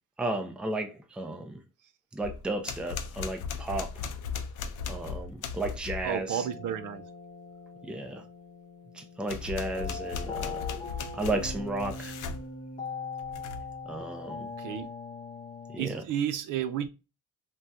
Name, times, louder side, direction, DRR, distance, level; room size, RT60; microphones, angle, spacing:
voice 1, 0.2-1.6 2.1-4.0 4.9-6.5 7.8-8.2 8.9-10.7 11.1-12.1 13.9-14.5 15.7-16.0, right 2 dB, 5° right, 0.4 m, -34 dB
sound 1, 2.2-6.1 9.2-12.5 13.2-13.7, left 6 dB, 65° left, 0.5 m, -37 dB
voice 2, 6.0-7.0 14.6-14.9 15.8-16.9, right 10 dB, 70° right, 0.5 m, -32 dB
sound 2, 6.3-15.8, left 4 dB, 25° left, 0.8 m, -41 dB
2.6 x 2.3 x 3.3 m
cardioid pair, 125°, 33 cm